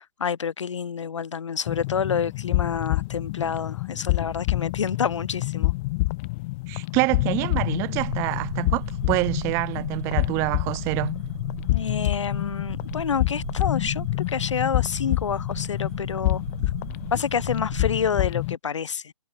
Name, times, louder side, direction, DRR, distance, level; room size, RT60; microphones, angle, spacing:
voice 1, 0.0-5.7 11.7-16.4 17.1-19.1, left 7 dB, 50° left, 1.7 m, -28 dB
sound 1, 1.7-18.6, left 23 dB, 20° left, 1.5 m, -28 dB
voice 2, 6.7-11.1, right 26 dB, 15° right, 0.8 m, -26 dB
sound 2, 7.9-18.0, right 8 dB, 40° right, 3.1 m, -38 dB
figure-of-eight pair, 145°, 20 cm